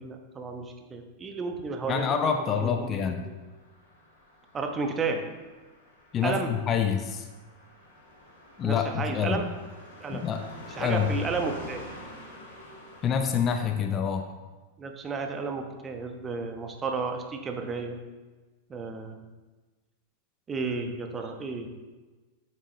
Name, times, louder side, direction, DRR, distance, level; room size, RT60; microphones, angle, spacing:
voice 1, 0.0-3.3 4.5-5.3 6.2-6.5 8.6-9.5 10.0-10.2 10.8-11.8 14.8-18.0 18.7-19.2 20.5-21.7, right 4 dB, 20° right, 4 dB, 1.1 m, -32 dB
voice 2, 1.8-3.2 6.1-7.3 8.6-9.4 10.1-10.4 10.8-11.2 13.0-14.3, left 7 dB, 30° left, 6 dB, 0.7 m, -27 dB
Car passing by, 3.5-13.4, left 1 dB, 50° left, 2.6 m, -46 dB
10.0 x 7.7 x 3.1 m, 1.3 s
figure-of-eight pair, 90°, 0 cm